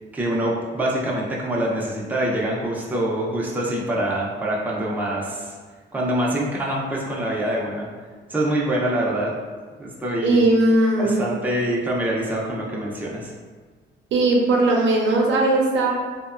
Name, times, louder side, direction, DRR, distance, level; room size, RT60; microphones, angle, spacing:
voice 1, 0.1-5.5 5.9-7.9 8.3-9.3 9.8-10.4 11.0-13.3, right 1 dB, 10° right, -4 dB, 0.5 m, -25 dB
voice 2, 10.2-11.2 14.1-15.9, right 2 dB, 70° right, -1 dB, 0.6 m, -18 dB
2.9 x 2.1 x 2.4 m, 1.5 s
cardioid pair, 90°, 20 cm